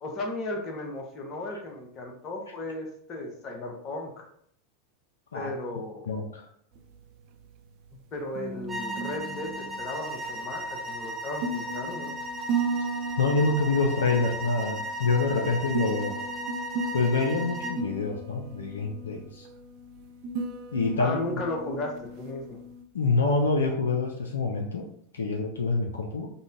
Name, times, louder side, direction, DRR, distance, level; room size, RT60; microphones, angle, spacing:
voice 1, 0.0-4.3 5.3-6.2 8.1-12.2 21.0-22.6, left 2 dB, 35° left, 2 dB, 0.8 m, -35 dB
voice 2, 6.1-6.4 13.2-16.2 16.9-19.5 20.7-21.2 22.9-24.8 25.1-26.3, left 3 dB, 75° left, 2 dB, 0.4 m, -26 dB
sound 1, 6.7-22.8, right 3 dB, 50° right, 0.4 m, -36 dB
sound 2, 8.7-17.8, right 1 dB, 15° right, 0.7 m, -36 dB
5.1 x 2.1 x 2.4 m, 0.68 s
figure-of-eight pair, 85°, 0 cm